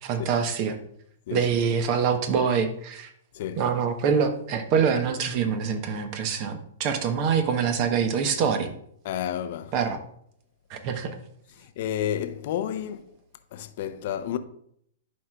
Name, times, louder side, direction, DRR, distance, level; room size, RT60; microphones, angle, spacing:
voice 1, 0.0-0.8 1.3-3.1 3.6-8.7 9.7-10.0 10.7-11.1, right 6 dB, 40° right, 1.0 m, -25 dB
voice 2, 3.3-3.7 9.0-9.7 11.8-13.1 13.5-14.4, left 10 dB, 55° left, 0.6 m, -31 dB
11.5 x 4.8 x 2.3 m
hypercardioid pair, 125°, 0 cm